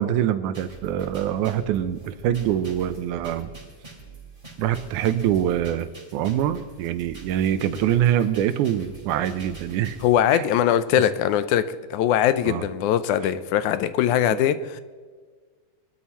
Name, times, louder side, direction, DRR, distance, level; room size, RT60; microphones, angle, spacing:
voice 1, 0.0-3.5 4.6-10.0 10.3-10.5 12.5-12.6, right 10 dB, 80° right, 12 dB, 2.1 m, -24 dB
sound 1, 0.5-10.1, right 4 dB, 15° right, 3.2 m, -44 dB
voice 2, 10.0-11.7 11.9-14.8, left 10 dB, 80° left, 13 dB, 2.0 m, -21 dB
22.5 x 12.5 x 3.0 m, 1.5 s
omnidirectional pair, 3.6 m